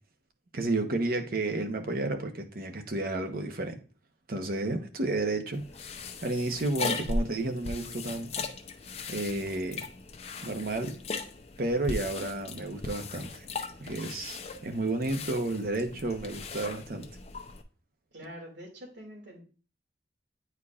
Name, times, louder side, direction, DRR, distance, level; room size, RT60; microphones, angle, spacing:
voice 1, 0.5-3.8 4.3-5.6 6.2-8.5 9.1-9.8 10.4-10.9 11.6-13.5 13.8-17.1, right 2 dB, 55° right, 0.9 m, -31 dB
sound 1, 5.5-17.6, left 3 dB, 35° left, 0.6 m, -38 dB
voice 2, 18.1-19.4, equal, 85° right, 2.4 m, -45 dB
9.5 x 4.5 x 2.4 m
head